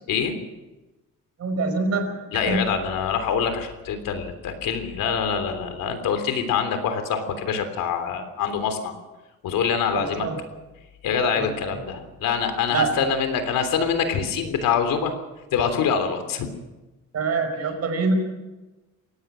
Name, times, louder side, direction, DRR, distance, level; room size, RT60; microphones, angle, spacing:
voice 1, 1.4-2.7 9.9-10.4 11.3-11.5 12.7-13.0 17.1-18.1, right 4 dB, 50° right, 5 dB, 5.2 m, -25 dB
voice 2, 2.3-8.9 9.4-10.3 11.0-15.1 15.5-16.5, left 6 dB, 85° left, 8 dB, 3.4 m, -25 dB
24.0 x 18.0 x 6.3 m, 1.1 s
cardioid pair, 145°, 33 cm